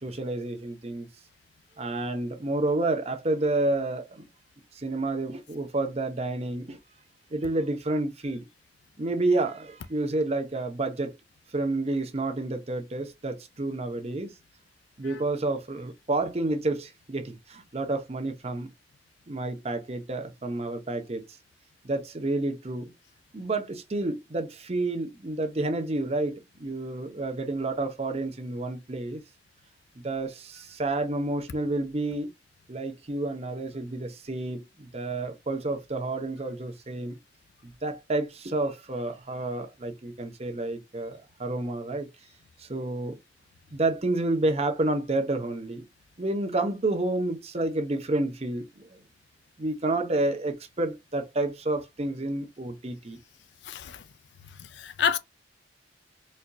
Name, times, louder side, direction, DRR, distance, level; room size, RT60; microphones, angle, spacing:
voice 1, 0.0-1.1 1.8-4.2 4.7-6.8 7.3-8.5 9.0-11.2 11.5-14.3 15.0-18.7 19.3-21.2 21.8-22.9 23.3-29.2 30.0-32.3 32.7-37.2 37.6-42.1 42.6-43.2 43.7-45.8 46.2-48.9 49.6-53.2, right 2 dB, 35° right, 0.8 m, -29 dB
voice 2, 53.6-54.0 54.5-55.2, left 7 dB, 80° left, 0.4 m, -29 dB
4.3 x 2.6 x 2.3 m
head